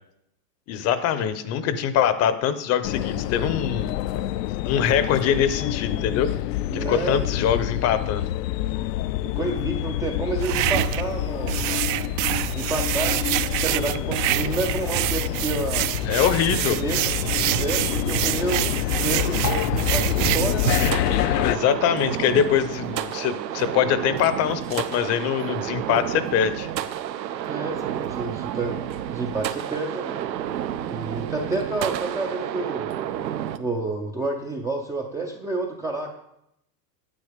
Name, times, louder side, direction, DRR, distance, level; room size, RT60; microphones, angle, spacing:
voice 1, 0.7-3.9 4.6-6.3 6.7-8.2 16.1-16.8 21.4-26.7, left 9 dB, 30° left, 13 dB, 0.7 m, -23 dB
sound 1, 2.8-21.6, left 14 dB, 75° left, 0.6 m, -27 dB
voice 2, 6.7-7.3 9.2-11.6 12.5-15.9 16.7-17.0 17.6-20.8 27.5-28.8 29.1-30.2 30.9-32.9 33.6-36.1, right 3 dB, 5° right, 0 dB, 0.4 m, -29 dB
sound 2, 10.4-20.9, right 15 dB, 55° right, 0.6 m, -26 dB
sound 3, 20.8-33.6, right 10 dB, 90° right, 0.9 m, -30 dB
9.9 x 8.3 x 5.0 m, 0.80 s
supercardioid pair, 130°, 49 cm